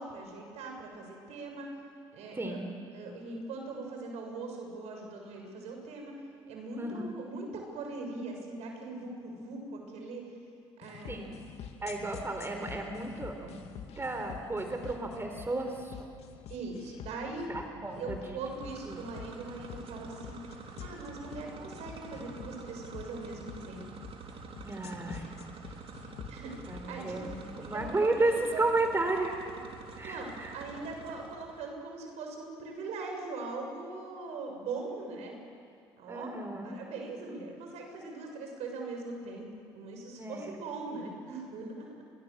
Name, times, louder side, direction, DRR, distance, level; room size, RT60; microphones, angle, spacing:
voice 1, 0.0-1.7 2.1-2.6 2.9-6.2 6.5-10.2 10.8-11.3 16.5-17.5 18.0-20.5 20.8-23.9 26.3-27.2 27.6-28.7 30.0-30.3 30.5-35.4 36.0-36.3 36.6-39.5 39.7-42.0, right 3 dB, 70° right, 2 dB, 6.8 m, -41 dB
voice 2, 2.3-2.7 6.8-7.0 11.1-11.3 11.8-13.7 14.0-16.1 17.4-18.4 18.9-19.0 24.6-25.3 26.7-29.3 30.0-30.5 36.1-36.8 40.2-40.6, right 2 dB, 20° right, 4 dB, 4.0 m, -33 dB
sound 1, 10.8-28.0, left 8 dB, 60° left, 2.5 m, -47 dB
sound 2, 18.3-31.7, right 5 dB, 50° right, 3.3 m, -48 dB
29.0 x 23.5 x 7.5 m, 2.4 s
hypercardioid pair, 65°, 12 cm